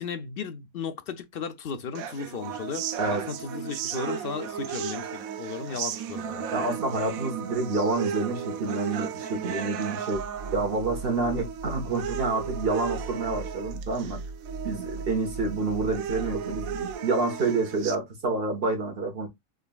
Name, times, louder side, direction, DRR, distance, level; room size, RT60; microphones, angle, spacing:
voice 1, 0.0-2.8 3.1-6.4, left 6 dB, 55° left, 0.7 m, -35 dB
sound 1, 1.9-18.0, right 8 dB, 90° right, 1.0 m, -35 dB
voice 2, 6.5-10.2 10.5-14.2 14.6-19.3, right 3 dB, 45° right, 1.3 m, -28 dB
sound 2, 10.1-16.9, right 3 dB, 65° right, 2.0 m, -39 dB
5.0 x 3.1 x 2.2 m
omnidirectional pair, 1.4 m